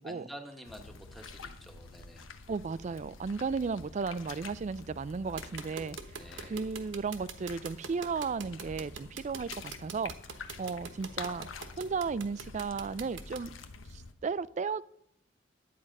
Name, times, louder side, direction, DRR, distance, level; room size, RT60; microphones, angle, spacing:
voice 1, 0.0-2.3 6.2-6.6, equal, ahead, 1.2 m, -48 dB
sound 1, 0.7-14.1, left 4 dB, 85° left, 0.9 m, -47 dB
voice 2, 2.5-6.0 6.4-10.1 10.6-11.5 11.8-13.5 13.9-14.8, right 5 dB, 35° right, 0.3 m, -34 dB
sound 2, 5.4-13.4, right 6 dB, 70° right, 1.1 m, -42 dB
11.0 x 8.5 x 5.3 m
head